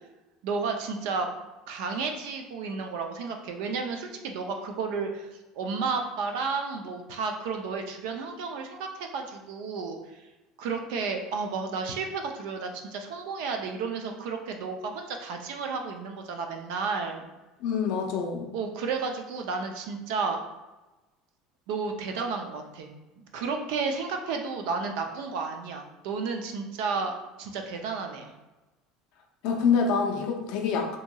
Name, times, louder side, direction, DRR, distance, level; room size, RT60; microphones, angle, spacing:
voice 1, 0.4-1.3 1.7-10.2 10.6-17.3 18.5-20.4 21.7-22.9 23.2-28.3, right 4 dB, 70° right, 4 dB, 0.4 m, -32 dB
voice 2, 17.6-18.5 29.4-31.0, left 5 dB, 65° left, 2 dB, 0.5 m, -26 dB
2.8 x 2.7 x 2.2 m, 1.1 s
cardioid pair, 155°, 0 cm